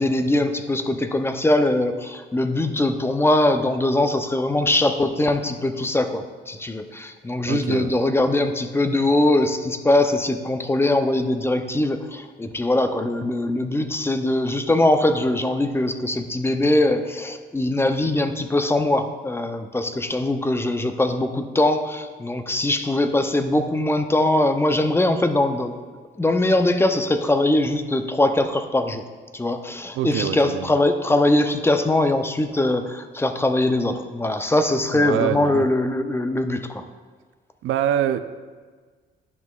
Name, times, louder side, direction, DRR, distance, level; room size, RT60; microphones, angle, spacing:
voice 1, 0.0-25.8 26.2-29.0 29.3-36.8, left 1 dB, 10° left, 8 dB, 0.5 m, -21 dB
voice 2, 7.5-7.9 29.9-30.7 34.9-35.7 37.6-38.2, right 10 dB, 80° right, 11 dB, 0.4 m, -25 dB
10.5 x 6.1 x 2.4 m, 1.4 s
cardioid pair, 90°, 20 cm